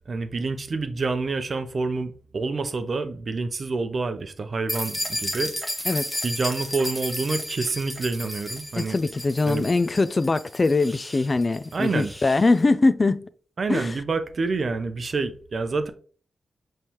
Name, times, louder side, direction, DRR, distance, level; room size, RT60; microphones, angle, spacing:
voice 1, 0.1-5.5 6.2-9.0 9.4-9.7 11.7-12.1 13.6-15.9, right 3 dB, 55° right, 0.6 m, -27 dB
sound 1, 4.7-12.5, left 1 dB, 5° left, 0.9 m, -33 dB
voice 2, 8.8-13.3 13.7-13.9, left 3 dB, 40° left, 0.3 m, -22 dB
5.4 x 3.2 x 2.9 m
cardioid pair, 55°, 0 cm